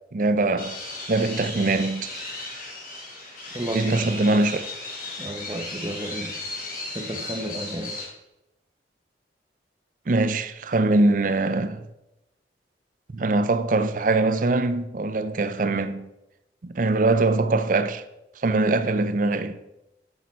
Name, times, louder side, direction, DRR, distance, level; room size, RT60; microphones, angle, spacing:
voice 1, 0.1-0.8 1.1-2.1 3.7-4.6 10.1-11.8 13.1-16.1 16.6-18.0 18.4-19.6, right 2 dB, 50° right, 0.5 m, -22 dB
sound 1, 0.6-8.0, left 2 dB, 55° left, 3.3 m, -36 dB
voice 2, 3.5-4.4 5.2-6.5 6.9-8.0, right 1 dB, 25° right, 0.9 m, -32 dB
10.5 x 6.9 x 4.4 m
head